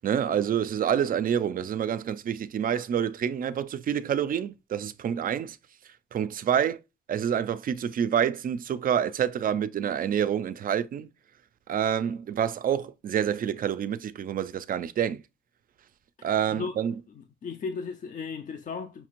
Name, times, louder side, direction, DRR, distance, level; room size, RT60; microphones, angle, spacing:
voice 1, 0.0-5.6 6.1-6.8 7.1-11.1 11.7-15.2 16.2-16.9, right 9 dB, 45° right, 0.4 m, -27 dB
voice 2, 17.1-19.1, left 5 dB, 40° left, 0.4 m, -35 dB
5.7 x 2.4 x 3.0 m
cardioid pair, 90°, 20 cm